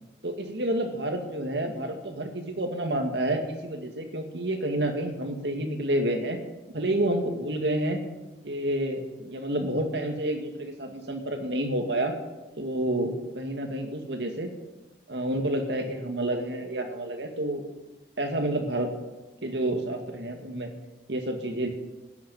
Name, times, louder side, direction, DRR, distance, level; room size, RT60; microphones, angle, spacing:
voice 1, 0.2-6.4 6.7-8.0 8.4-12.1 12.6-14.5 15.1-17.6 18.2-18.9 19.4-20.7 21.1-21.7, right 1 dB, 70° right, 4 dB, 2.1 m, -29 dB
11.5 x 9.4 x 8.8 m, 1.1 s
head